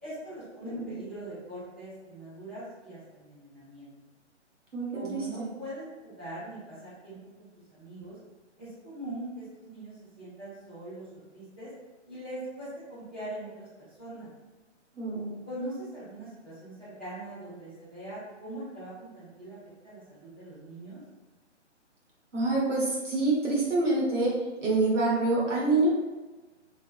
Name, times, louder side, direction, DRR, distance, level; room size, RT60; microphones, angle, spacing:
voice 1, 0.0-3.9 4.9-8.2 8.6-11.7 12.1-14.3 15.5-19.6 19.8-21.0, right 1 dB, 10° right, -14 dB, 0.5 m, -42 dB
voice 2, 0.6-1.0 4.7-5.5 15.0-15.4 22.3-24.3 24.6-25.9, right 2 dB, 90° right, -6 dB, 1.3 m, -26 dB
3.3 x 2.0 x 2.3 m, 1.2 s
hypercardioid pair, 150°, 36 cm